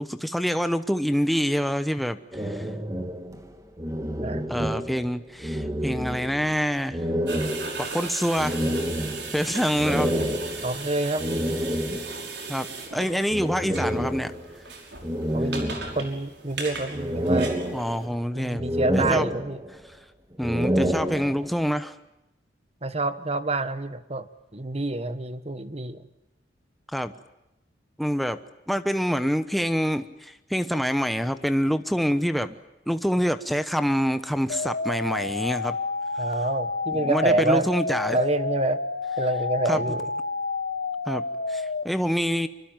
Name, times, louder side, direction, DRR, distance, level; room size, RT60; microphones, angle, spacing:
voice 1, 0.0-2.7 4.5-7.0 7.8-8.6 9.3-10.1 12.5-14.3 17.7-18.6 18.9-19.3 19.9-20.0 20.4-21.9 26.9-27.1 28.0-28.4 28.7-32.6 32.9-35.8 37.0-38.2 39.7-39.8 41.1-41.2 41.5-42.5, equal, ahead, 9 dB, 1.0 m, -26 dB
sound 1, 2.3-5.1 5.4-6.5 6.9-12.3 13.3-14.6 15.0-16.3 16.7-18.2 18.6-19.9 20.3-21.6, equal, 20° right, 2.2 m, -29 dB
sound 2, 7.3-18.0, right 4 dB, 70° right, 5.8 m, -37 dB
voice 2, 10.6-11.5 15.3-17.5 18.3-19.6 22.8-24.3 24.5-26.1 36.2-37.7 38.1-38.8 39.2-40.1, right 2 dB, 35° right, 12 dB, 1.4 m, -27 dB
sound 3, 34.5-41.8, left 3 dB, 65° left, 1.2 m, -30 dB
25.5 x 25.0 x 9.1 m, 0.90 s
head